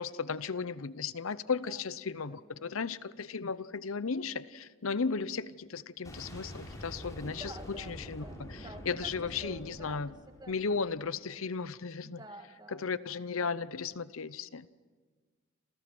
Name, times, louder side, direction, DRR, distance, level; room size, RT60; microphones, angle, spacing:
voice 1, 0.0-8.5 8.9-10.1 10.5-12.2 12.8-14.7, left 5 dB, 85° left, 16 dB, 0.8 m, -35 dB
voice 2, 2.2-2.8 7.2-10.5 12.0-12.9, right 1 dB, 20° right, 7 dB, 1.7 m, -50 dB
Boom, 6.0-10.9, equal, 15° left, 6.1 m, -46 dB
28.5 x 28.0 x 6.2 m, 1.4 s
head